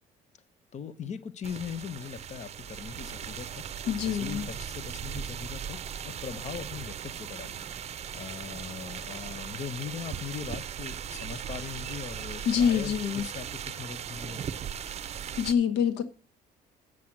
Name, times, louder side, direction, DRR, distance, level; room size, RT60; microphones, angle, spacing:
voice 1, 0.7-3.6 4.1-14.4, left 7 dB, 45° left, 1.0 m, -40 dB
sound 1, 1.4-15.5, right 8 dB, 40° right, 0.6 m, -38 dB
voice 2, 3.9-4.5 12.4-13.2 15.4-16.0, left 8 dB, 90° left, 1.1 m, -26 dB
7.7 x 7.5 x 7.5 m
cardioid pair, 110°, 17 cm